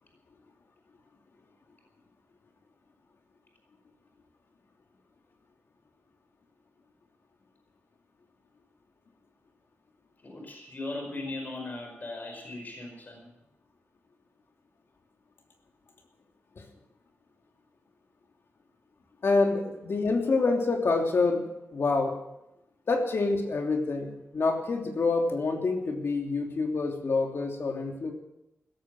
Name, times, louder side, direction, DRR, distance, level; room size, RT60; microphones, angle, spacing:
voice 1, 10.2-13.3, left 2 dB, 40° left, 2 dB, 5.0 m, -38 dB
voice 2, 19.2-21.4 21.7-22.2 22.9-28.1, left 3 dB, 60° left, 2 dB, 3.0 m, -27 dB
16.5 x 14.0 x 6.2 m, 0.89 s
wide cardioid pair, 120°, 5 cm